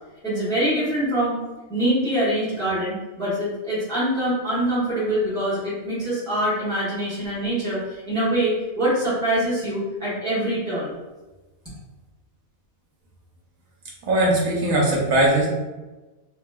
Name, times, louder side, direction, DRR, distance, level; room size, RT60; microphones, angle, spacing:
voice 1, 0.2-1.4 1.7-11.0, right 1 dB, 5° left, -11 dB, 1.1 m, -24 dB
voice 2, 14.0-15.5, right 1 dB, 75° right, -2 dB, 1.1 m, -19 dB
3.1 x 2.8 x 2.3 m, 1.1 s
omnidirectional pair, 1.5 m